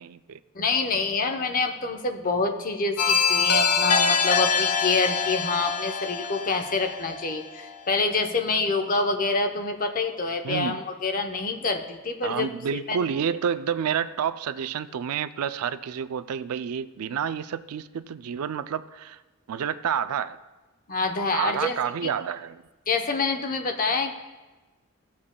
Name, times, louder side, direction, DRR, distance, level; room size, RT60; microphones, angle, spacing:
voice 1, 0.0-0.4 10.4-10.8 12.2-19.2 19.5-20.4 21.3-22.6, right 7 dB, 80° right, 13 dB, 0.4 m, -29 dB
voice 2, 0.5-13.0 20.9-21.8 22.0-22.1 22.9-24.1, left 4 dB, 40° left, 5 dB, 0.8 m, -26 dB
sound 1, 3.0-7.7, left 5 dB, 80° left, 0.8 m, -24 dB
17.0 x 7.4 x 2.2 m, 1.2 s
head